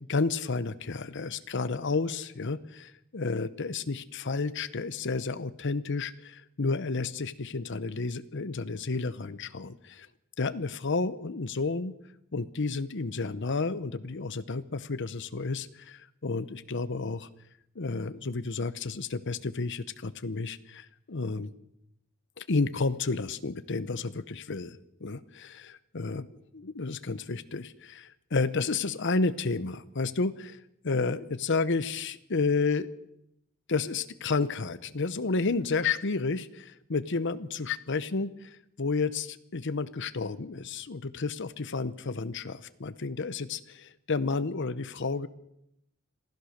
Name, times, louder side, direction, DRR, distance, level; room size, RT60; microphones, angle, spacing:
voice 1, 0.1-10.1 10.4-12.0 12.3-17.3 17.7-21.5 22.4-26.3 26.5-30.6 30.8-32.9 33.7-45.3, left 4 dB, 60° left, 13 dB, 0.9 m, -31 dB
27.0 x 16.0 x 6.6 m, 0.80 s
head